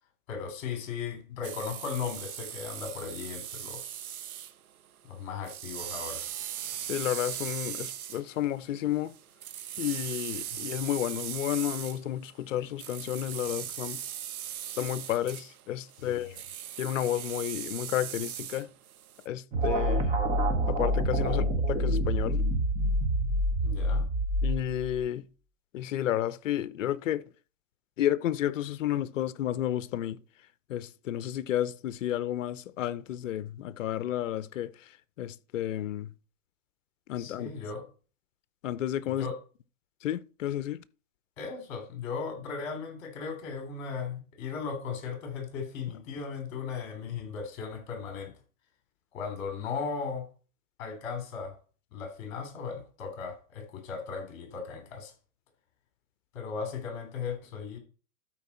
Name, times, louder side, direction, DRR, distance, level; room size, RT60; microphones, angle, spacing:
voice 1, 0.3-4.0 5.1-6.2 10.5-10.6 16.0-16.3 21.2-21.4 23.6-24.1 37.2-37.8 39.0-39.4 41.4-48.3 49.1-50.3 50.8-51.6 51.9-55.1 56.3-57.8, left 5 dB, 35° left, 3.2 m, -37 dB
sound 1, 1.4-4.5 4.8-4.9 5.2-12.0 12.8-19.3, right 10 dB, 80° right, 0.8 m, -39 dB
voice 2, 6.9-9.1 9.8-14.0 14.8-16.4 16.8-18.7 19.3-20.1 20.7-22.4 24.4-25.3 25.7-27.2 28.0-30.2 30.7-34.7 35.2-36.1 37.1-37.5 38.6-39.3 40.0-40.8, left 12 dB, 60° left, 0.7 m, -31 dB
sound 2, 19.5-25.0, right 1 dB, 15° right, 1.2 m, -27 dB
12.5 x 4.6 x 4.2 m
hypercardioid pair, 145°, 43 cm